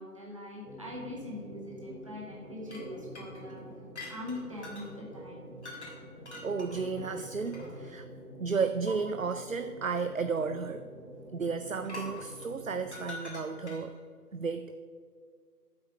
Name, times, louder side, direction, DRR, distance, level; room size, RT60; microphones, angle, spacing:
voice 1, 0.0-3.6 4.1-5.4, left 1 dB, 20° right, -5 dB, 1.8 m, -42 dB
sound 1, 0.6-13.1, equal, 85° right, 3.4 m, -48 dB
sound 2, 2.7-4.9 5.6-6.0 6.3-8.0 8.9-9.0 11.8-14.0, left 1 dB, 45° left, 2.9 m, -45 dB
voice 2, 6.4-8.1 8.4-10.9 11.3-14.0 14.3-14.8, right 5 dB, 60° right, 10 dB, 0.6 m, -33 dB
12.0 x 8.0 x 5.3 m, 2.1 s
figure-of-eight pair, 165°, 47 cm